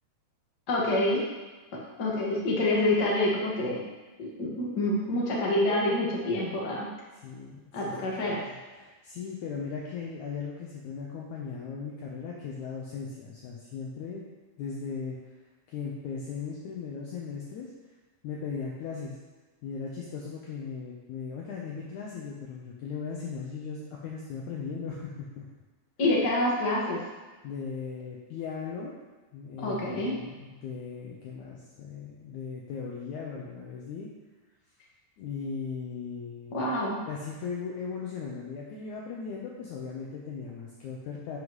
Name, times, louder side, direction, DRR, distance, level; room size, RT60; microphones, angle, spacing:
voice 1, 0.7-1.2 1.7-3.8 4.2-6.9 7.7-8.4 26.0-27.0 29.6-30.2 36.5-37.0, left 1 dB, 45° left, -5 dB, 1.4 m, -27 dB
voice 2, 7.2-14.3 14.6-15.2 15.7-17.7 18.2-19.2 19.6-25.5 27.4-29.0 29.3-34.1 35.2-36.6 37.1-41.4, left 5 dB, 80° left, -3 dB, 1.7 m, -38 dB
13.0 x 5.6 x 3.2 m, 1.2 s
omnidirectional pair, 4.6 m